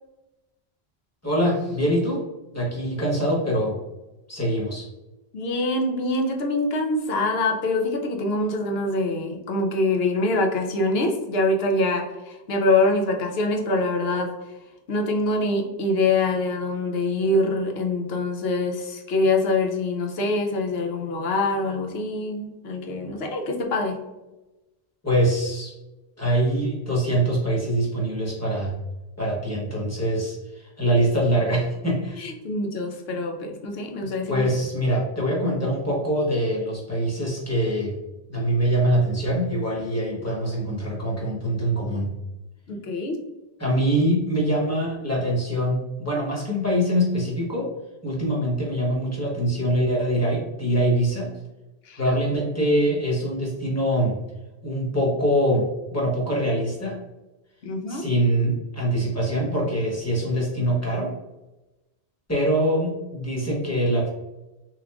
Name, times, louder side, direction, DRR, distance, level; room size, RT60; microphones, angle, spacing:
voice 1, 1.2-2.2 2.5-3.8 4.3-4.9 25.0-25.7 26.2-28.8 29.2-32.3 34.0-38.0 38.3-42.1 43.6-47.7 48.0-51.3 52.0-54.2 54.6-57.0 57.9-61.1 62.3-64.1, right 1 dB, 15° left, -4 dB, 1.0 m, -24 dB
voice 2, 5.3-14.4 14.9-24.0 32.2-34.4 42.7-43.2 51.9-52.0 57.6-58.0, left 2 dB, 70° left, 3 dB, 0.9 m, -24 dB
3.5 x 3.2 x 2.3 m, 1.0 s
omnidirectional pair, 1.1 m